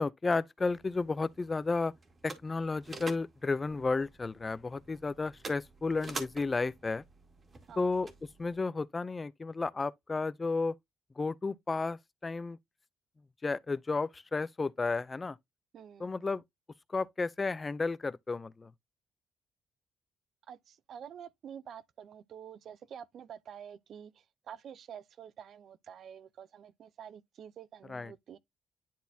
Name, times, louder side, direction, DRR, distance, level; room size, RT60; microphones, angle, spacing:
voice 1, 0.0-1.9 2.2-7.0 7.8-8.1 8.4-10.8 11.2-12.6 13.4-15.4 16.0-16.4 16.9-18.7 27.9-28.1, left 3 dB, 25° left, 0.5 m, -32 dB
sound 1, 0.6-8.6, right 3 dB, 35° right, 1.9 m, -48 dB
voice 2, 15.7-16.1 20.5-24.1 24.5-28.4, right 8 dB, 65° right, 0.7 m, -48 dB
10.5 x 4.0 x 2.8 m
cardioid pair, 90°, 0 cm